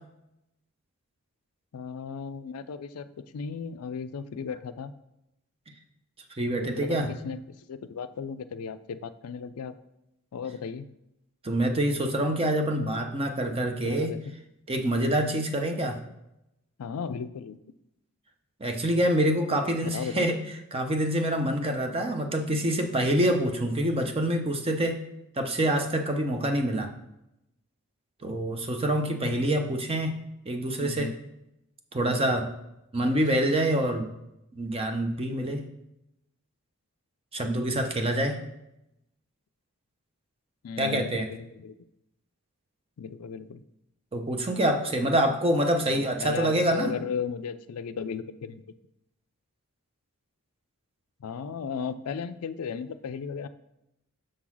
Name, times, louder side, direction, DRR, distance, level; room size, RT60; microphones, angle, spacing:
voice 1, 1.7-4.9 6.6-7.4 7.7-9.8 10.3-10.9 13.8-14.3 16.8-17.6 19.8-20.3 30.8-31.1 33.0-33.5 40.6-41.7 43.0-43.6 45.9-48.6 51.2-53.5, left 6 dB, 75° left, 12 dB, 0.4 m, -36 dB
voice 2, 6.3-7.1 11.4-14.1 14.7-16.0 18.6-20.4 20.7-25.0 25.4-26.9 28.2-30.2 30.5-31.1 31.9-32.5 32.9-34.1 34.5-35.6 37.3-38.4 40.8-41.3 44.1-46.9, right 1 dB, 25° right, 4 dB, 0.7 m, -26 dB
6.5 x 3.8 x 6.1 m, 0.87 s
head